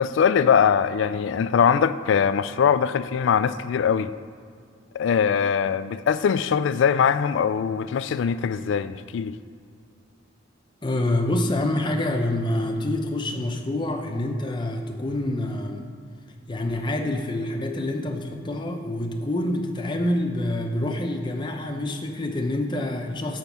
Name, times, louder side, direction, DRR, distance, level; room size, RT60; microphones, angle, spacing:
voice 1, 0.0-4.1 4.9-9.4, left 7 dB, 65° left, 0.3 m, -22 dB
voice 2, 10.8-15.9 16.5-23.4, left 1 dB, 25° left, 0.7 m, -27 dB
6.9 x 5.1 x 5.9 m
head